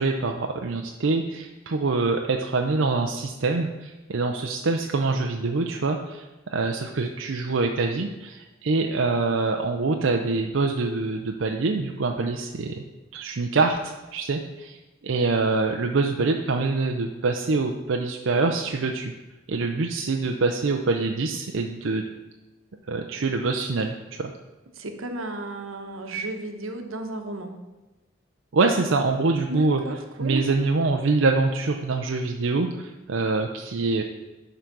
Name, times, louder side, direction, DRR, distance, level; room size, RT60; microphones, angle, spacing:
voice 1, 0.0-12.8 13.1-14.8 15.0-19.1 19.5-22.0 22.8-24.3 28.5-29.8 30.2-34.0, right 3 dB, 70° right, 3 dB, 0.6 m, -25 dB
voice 2, 24.7-27.6 29.5-30.5, right 2 dB, 90° right, 5 dB, 1.1 m, -33 dB
11.5 x 3.9 x 6.0 m, 1.1 s
head